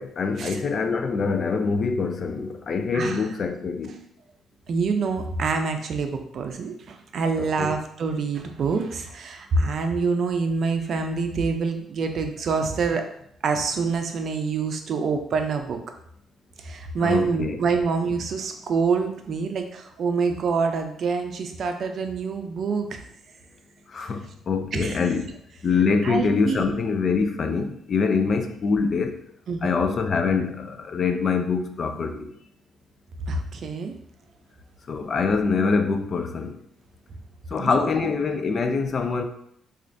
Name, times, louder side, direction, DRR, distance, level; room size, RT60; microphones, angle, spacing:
voice 1, 0.0-3.9 7.4-7.8 17.0-17.6 23.9-25.3 25.6-29.2 29.6-32.3 34.9-36.6 37.5-39.2, left 5 dB, 45° left, 0.4 m, -24 dB
voice 2, 4.7-13.0 13.4-15.8 16.6-23.0 24.7-25.0 26.0-26.7 29.5-29.7 33.3-33.9 37.6-38.1, right 4 dB, 60° right, 0.4 m, -26 dB
4.2 x 2.4 x 2.5 m
cardioid pair, 90°, 0 cm